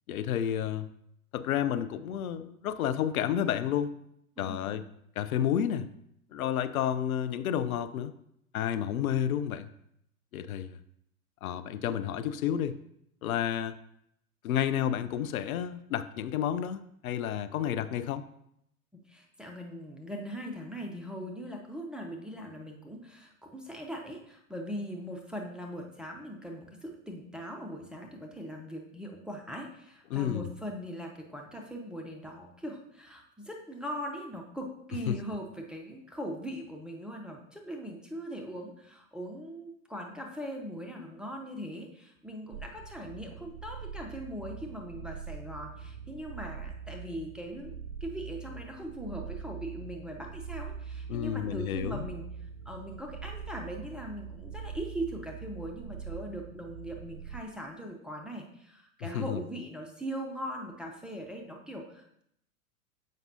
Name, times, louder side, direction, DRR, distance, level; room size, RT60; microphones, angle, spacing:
voice 1, 0.1-0.9 1.3-3.9 4.4-4.9 5.2-5.9 6.3-8.1 8.5-9.7 10.3-10.8 11.4-12.8 13.2-13.7 14.4-18.2 30.1-30.5 35.1-35.2 51.1-52.0 59.0-59.4, left 10 dB, 75° left, 13 dB, 0.5 m, -30 dB
voice 2, 4.4-4.8 19.1-47.8 48.0-52.2 52.7-62.2, equal, ahead, 1 dB, 0.5 m, -40 dB
sound 1, 42.5-57.4, right 6 dB, 65° right, 0.5 m, -43 dB
7.3 x 5.2 x 2.7 m, 0.75 s
hypercardioid pair, 100°, 43 cm